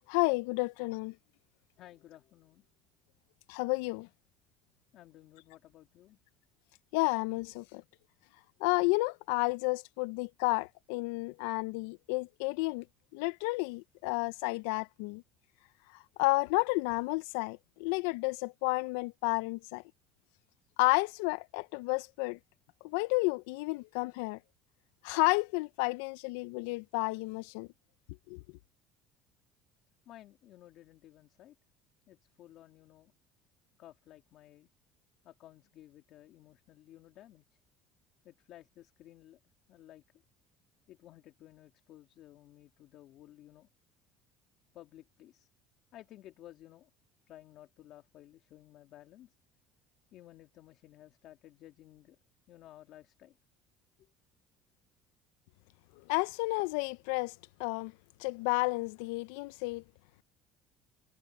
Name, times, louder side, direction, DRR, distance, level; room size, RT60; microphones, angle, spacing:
voice 1, 0.1-1.1 3.5-4.1 6.9-7.8 8.6-12.8 13.1-15.2 16.2-19.8 20.8-22.4 22.8-24.4 25.0-27.7 28.3-28.4 56.1-57.3 57.6-57.9 58.2-59.8, left 25 dB, 90° left, 0.4 m, -31 dB
voice 2, 1.8-2.6 4.9-6.2 30.1-31.5 32.1-33.1 33.8-34.7 35.2-37.4 38.2-39.4 39.7-40.0 40.9-43.7 44.7-45.5 45.9-46.9 47.3-49.3 50.1-52.2 52.5-53.4 54.0-54.1, left 13 dB, 60° left, 2.4 m, -55 dB
cardioid pair, 115°, 0 cm